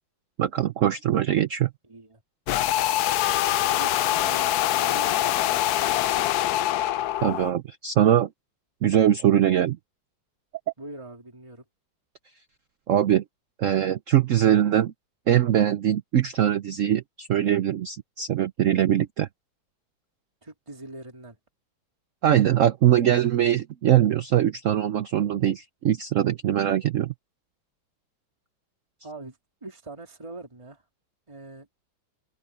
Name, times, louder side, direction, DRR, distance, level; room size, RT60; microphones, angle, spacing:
voice 1, 0.4-1.7 7.2-8.3 8.8-9.8 12.9-13.2 13.6-14.9 15.3-19.3 22.2-27.1, right 11 dB, 70° right, 0.7 m, -22 dB
voice 2, 1.9-2.2 3.8-6.3 10.8-11.6 20.4-21.4 22.8-22.9 29.0-30.8 31.3-31.7, right 2 dB, 15° right, 2.7 m, -42 dB
sound 1, 2.5-7.5, left 13 dB, 70° left, 0.9 m, -24 dB
open air
omnidirectional pair, 2.1 m